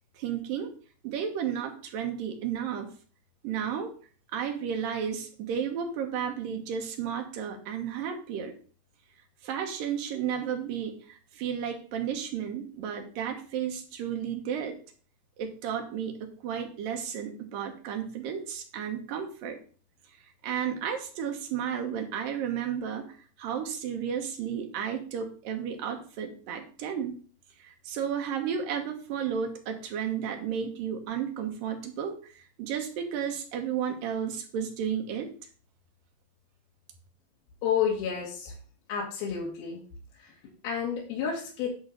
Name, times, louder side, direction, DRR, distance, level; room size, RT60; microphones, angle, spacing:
voice 1, 0.1-0.7 1.0-2.9 3.4-3.9 4.3-8.5 9.4-14.8 15.4-19.6 20.4-27.2 27.6-35.3, right 8 dB, 75° right, 4 dB, 2.9 m, -33 dB
voice 2, 37.6-38.6 38.9-39.8 40.2-41.7, left 7 dB, 85° left, -3 dB, 3.6 m, -30 dB
10.5 x 3.9 x 6.3 m, 0.42 s
omnidirectional pair, 4.2 m